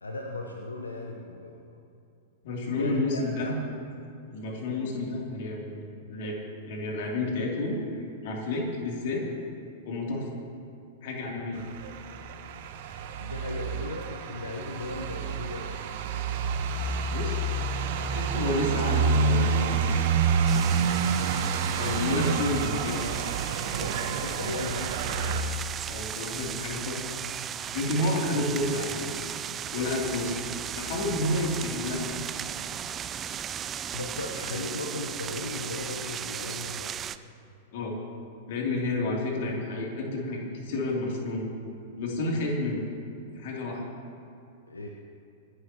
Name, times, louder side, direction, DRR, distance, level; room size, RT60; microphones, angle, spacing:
voice 1, 0.0-1.8 2.7-3.6 13.2-15.8 21.9-22.8 23.7-25.0 33.9-36.9 44.7-44.9, left 2 dB, 80° left, 1 dB, 1.1 m, -37 dB
voice 2, 2.4-3.5 4.3-5.8 6.1-6.4 6.7-9.2 9.8-10.3 11.0-11.6 17.1-17.4 17.7-20.1 21.8-23.0 25.8-27.1 27.7-29.1 29.7-30.4 30.8-32.1 34.5-34.6 37.7-38.0 38.5-41.5 42.0-42.8 43.3-43.8, left 2 dB, 55° left, -2 dB, 3.1 m, -30 dB
sound 1, 11.6-25.4, right 5 dB, 50° right, 1.2 m, -28 dB
sound 2, 20.5-37.2, right 9 dB, 25° right, 0.5 m, -36 dB
26.0 x 11.5 x 3.1 m, 2.7 s
figure-of-eight pair, 95°, 0 cm